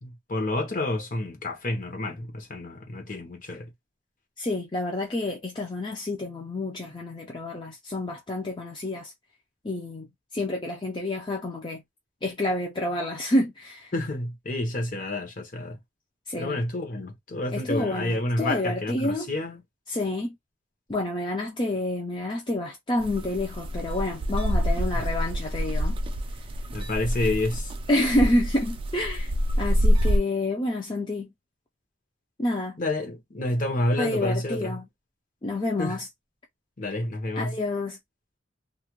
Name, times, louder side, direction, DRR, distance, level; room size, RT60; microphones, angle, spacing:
voice 1, 0.0-3.7 13.9-15.8 16.4-19.6 24.9-25.0 26.7-27.7 32.8-34.8 35.8-36.0 36.8-37.6, left 2 dB, 45° left, 0.9 m, -29 dB
voice 2, 4.4-9.1 9.6-11.8 12.2-13.9 16.3-16.6 17.5-19.3 19.9-20.3 20.9-26.0 27.9-31.3 32.4-32.8 34.0-34.8 35.4-36.1 37.4-38.0, left 1 dB, 25° left, 0.5 m, -28 dB
sound 1, 23.0-30.2, equal, 30° right, 0.4 m, -26 dB
2.5 x 2.1 x 3.0 m
head